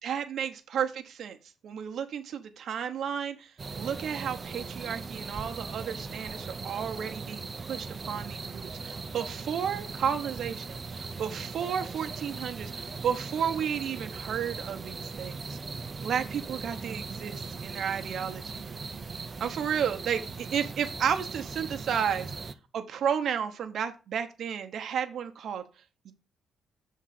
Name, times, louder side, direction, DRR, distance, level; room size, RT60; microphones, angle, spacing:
voice 1, 0.0-1.4 1.6-3.5 3.8-15.6 16.0-18.4 19.4-22.5 22.7-25.6 26.0-26.1, right 8 dB, 65° right, 6 dB, 0.9 m, -32 dB
sound 1, 3.6-22.5, right 4 dB, 35° right, 0.6 m, -39 dB
6.5 x 3.7 x 5.9 m, 0.32 s
cardioid pair, 90°, 0 cm